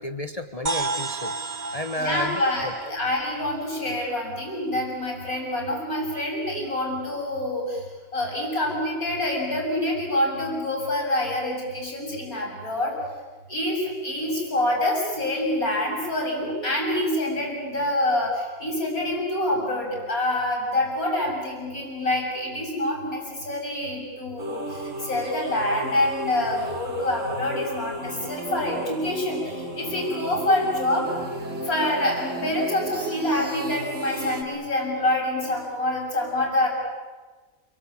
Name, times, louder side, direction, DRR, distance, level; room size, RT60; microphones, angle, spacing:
voice 1, 0.0-1.3 1.7-3.0, left 1 dB, 25° left, 7 dB, 1.3 m, -32 dB
sound 1, 0.7-4.4, right 3 dB, 35° right, 1.0 m, -33 dB
voice 2, 2.0-13.0 13.5-31.1 31.6-36.7, left 1 dB, 85° left, 0 dB, 7.5 m, -26 dB
sound 2, 24.4-34.4, right 1 dB, 60° right, 2.6 m, -34 dB
29.5 x 22.5 x 8.7 m, 1.3 s
omnidirectional pair, 1.5 m